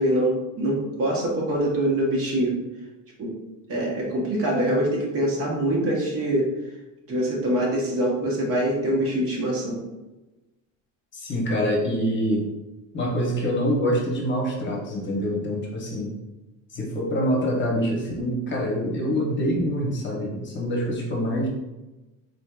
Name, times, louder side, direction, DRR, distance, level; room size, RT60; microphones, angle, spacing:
voice 1, 0.0-2.6 3.2-3.3 3.7-6.5 7.1-9.8, right 1 dB, 45° right, -2 dB, 1.1 m, -24 dB
voice 2, 11.1-12.5 12.9-16.1 16.7-21.5, equal, 35° left, -2 dB, 0.9 m, -25 dB
4.0 x 3.4 x 2.3 m, 1.0 s
cardioid pair, 155°, 33 cm